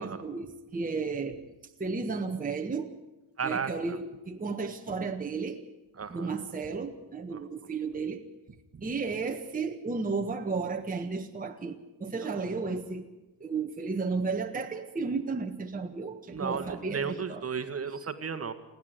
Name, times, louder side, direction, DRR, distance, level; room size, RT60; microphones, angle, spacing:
voice 1, 0.0-1.4 1.8-2.9 3.4-5.6 6.1-8.2 8.8-13.1 13.4-17.4, right 4 dB, 20° right, 3 dB, 1.5 m, -33 dB
voice 2, 3.4-4.0 6.0-6.3 7.3-7.4 8.7-8.8 16.3-18.5, right 6 dB, 35° right, 9 dB, 1.8 m, -34 dB
28.5 x 11.0 x 9.5 m, 1.0 s
supercardioid pair, 75°, 40 cm